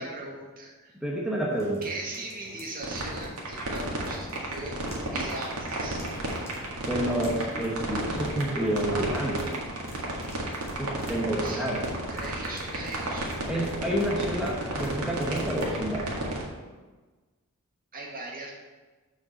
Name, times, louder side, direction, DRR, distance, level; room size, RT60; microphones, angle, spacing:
voice 1, 0.0-1.0 1.8-4.8 5.1-6.0 10.4-10.7 11.4-13.3 17.9-18.5, right 2 dB, 40° right, -2 dB, 1.8 m, -39 dB
voice 2, 1.0-1.8 6.5-9.5 10.8-11.9 13.5-16.1, right 1 dB, 5° right, -4 dB, 1.0 m, -29 dB
sound 1, 1.5-15.9, equal, 15° left, 2.0 m, -46 dB
sound 2, 2.8-16.4, right 2 dB, 85° right, 1.9 m, -32 dB
6.9 x 5.2 x 6.4 m, 1.3 s
head